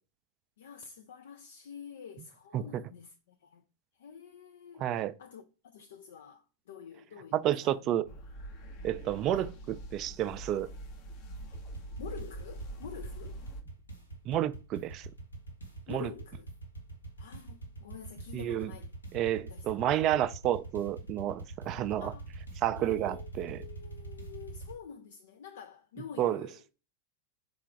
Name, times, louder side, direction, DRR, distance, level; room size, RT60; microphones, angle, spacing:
voice 1, 0.6-3.6 4.0-4.9 5.2-7.9 9.3-9.5 12.0-13.4 15.9-16.5 17.2-18.9 19.5-19.7 22.0-22.3 22.8-26.6, left 7 dB, 70° left, 0.4 m, -48 dB
voice 2, 4.8-5.1 7.3-8.0 8.8-10.7 14.3-15.1 15.9-16.1 18.3-18.7 19.1-22.1 22.6-23.7 26.2-26.5, right 12 dB, 40° right, 0.3 m, -30 dB
sound 1, 8.0-13.6, right 1 dB, 50° left, 0.8 m, -44 dB
sound 2, 11.3-24.7, right 2 dB, 90° left, 1.0 m, -45 dB
3.7 x 2.4 x 4.4 m
figure-of-eight pair, 95°, 0 cm